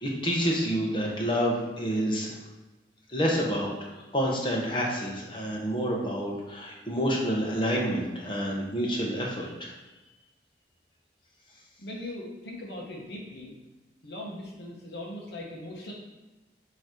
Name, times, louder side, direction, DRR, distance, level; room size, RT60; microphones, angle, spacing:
voice 1, 0.0-2.4 3.1-3.7 4.1-9.7, equal, 30° left, -2 dB, 1.2 m, -28 dB
voice 2, 11.8-13.5 14.0-15.9, left 1 dB, 70° left, -2 dB, 1.2 m, -39 dB
7.4 x 3.2 x 4.6 m, 1.1 s
head